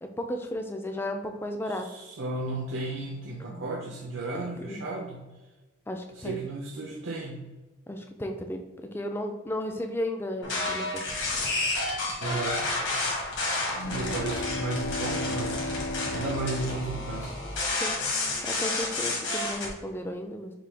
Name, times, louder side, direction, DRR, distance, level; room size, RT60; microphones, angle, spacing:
voice 1, 0.0-1.9 3.5-3.6 4.3-4.8 5.9-6.4 7.9-8.6 8.9-11.0 17.7-18.0 18.4-20.5, left 1 dB, 10° left, 4 dB, 0.3 m, -34 dB
voice 2, 1.6-5.3 6.1-7.5 12.2-12.7 13.8-15.6 16.1-17.4, right 2 dB, 70° right, -1 dB, 0.6 m, -34 dB
sound 1, 10.4-19.7, left 2 dB, 65° left, 1.3 m, -30 dB
sound 2, 13.7-17.7, left 2 dB, 80° left, 0.4 m, -35 dB
6.0 x 2.2 x 3.3 m, 1.2 s
head